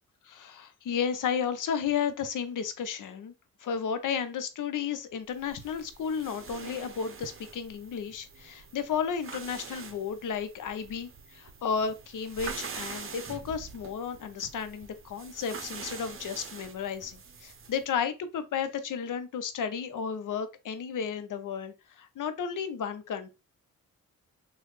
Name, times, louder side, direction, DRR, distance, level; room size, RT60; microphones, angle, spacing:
voice 1, 0.3-3.3 3.6-23.3, left 7 dB, 65° left, 0.7 m, -33 dB
sound 1, 5.3-17.9, right 5 dB, 40° right, 0.8 m, -45 dB
3.1 x 2.3 x 3.1 m
supercardioid pair, 45°, 35 cm